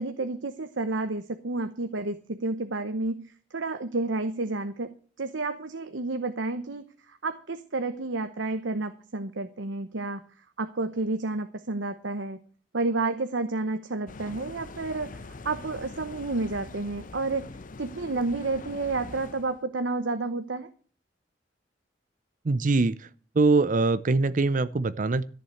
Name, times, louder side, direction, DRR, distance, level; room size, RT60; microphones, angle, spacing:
voice 1, 0.0-10.2 10.6-12.4 12.7-15.1 15.4-17.5 17.8-20.7, right 3 dB, 90° right, 9 dB, 0.9 m, -30 dB
sound 1, 14.1-19.6, left 3 dB, 45° left, 0.7 m, -43 dB
voice 2, 22.4-23.1 23.4-25.2, right 3 dB, 45° right, 15 dB, 0.5 m, -23 dB
14.0 x 7.0 x 7.7 m, 0.42 s
head